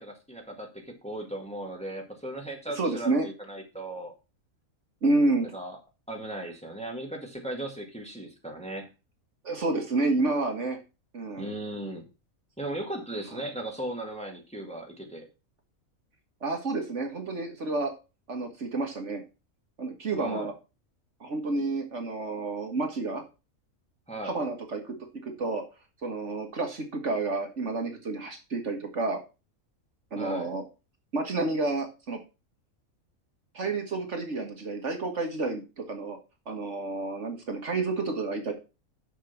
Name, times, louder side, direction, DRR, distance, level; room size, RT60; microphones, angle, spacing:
voice 1, 0.0-4.1 5.5-5.8 6.1-8.9 11.4-12.1 12.6-15.3 20.2-20.5 24.1-24.4 30.2-30.5, right 1 dB, 5° left, 1 dB, 1.8 m, -37 dB
voice 2, 2.8-3.3 5.0-5.5 9.4-10.8 11.1-11.5 13.3-13.4 16.4-17.9 18.3-19.2 19.8-20.5 21.2-23.2 24.2-25.0 25.2-25.6 26.0-29.2 30.1-30.6 31.1-32.2 33.5-36.2 36.5-38.5, right 3 dB, 55° right, 4 dB, 1.8 m, -29 dB
6.5 x 6.3 x 5.8 m, 0.29 s
omnidirectional pair, 1.5 m